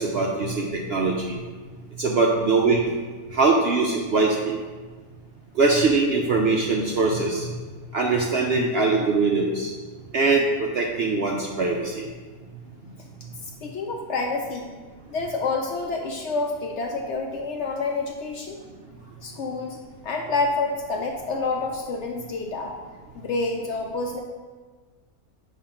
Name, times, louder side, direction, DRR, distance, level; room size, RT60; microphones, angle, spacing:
voice 1, 0.0-1.4 2.0-2.8 3.3-4.6 5.6-7.5 7.9-9.7 10.1-12.1, right 3 dB, 60° right, 0 dB, 0.6 m, -22 dB
voice 2, 13.4-14.7 15.1-18.6 19.2-19.8 20.0-22.7 23.1-24.2, left 3 dB, 65° left, 2 dB, 0.7 m, -28 dB
7.3 x 2.5 x 5.7 m, 1.4 s
omnidirectional pair, 1.5 m